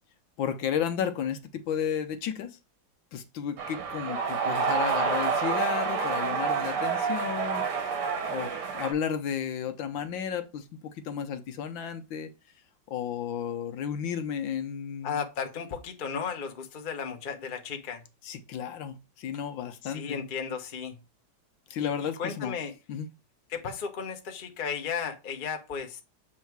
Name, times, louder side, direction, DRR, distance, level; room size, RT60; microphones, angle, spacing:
voice 1, 0.4-2.6 3.1-12.3 12.9-15.2 18.2-20.2 21.7-22.5 22.9-23.1, left 8 dB, 70° left, 1.4 m, -33 dB
sound 1, 3.6-8.9, right 5 dB, 80° right, 2.4 m, -28 dB
voice 2, 15.0-18.0 19.8-21.0 21.8-22.7 23.5-26.0, left 6 dB, 45° left, 0.6 m, -34 dB
7.3 x 3.7 x 4.6 m
omnidirectional pair, 2.4 m